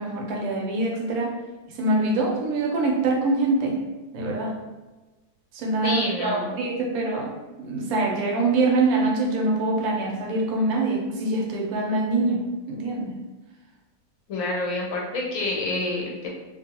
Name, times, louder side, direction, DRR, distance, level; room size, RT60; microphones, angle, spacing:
voice 1, 0.0-1.4 1.7-3.8 4.1-4.6 5.5-7.3 7.6-13.2, right 2 dB, 75° right, 1 dB, 1.0 m, -24 dB
voice 2, 5.8-6.5 14.3-16.3, left 2 dB, 65° left, -2 dB, 0.9 m, -28 dB
2.5 x 2.5 x 2.8 m, 1.2 s
omnidirectional pair, 1.6 m